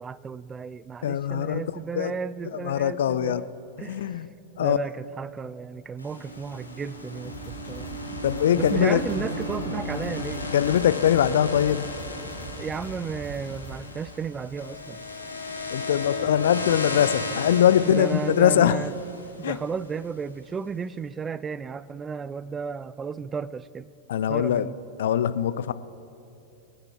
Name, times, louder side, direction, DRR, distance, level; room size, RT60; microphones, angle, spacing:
voice 1, 0.0-3.5 3.8-4.1 4.6-7.9 8.5-10.5 12.6-15.0 17.8-19.0 19.4-23.9 24.3-24.8, right 5 dB, 20° right, 18 dB, 0.4 m, -33 dB
voice 2, 1.0-1.6 1.9-2.1 2.6-3.4 3.8-4.3 4.6-4.8 8.2-9.0 10.5-11.9 15.7-18.8 19.4-19.6 24.1-24.7 25.0-25.7, left 10 dB, 60° left, 15 dB, 0.5 m, -22 dB
sound 1, 6.0-20.2, left 2 dB, 85° left, 1.9 m, -35 dB
sound 2, 7.2-13.8, right 1 dB, 30° left, 3.7 m, -42 dB
24.0 x 9.0 x 4.4 m, 2.8 s
figure-of-eight pair, 90°, 0 cm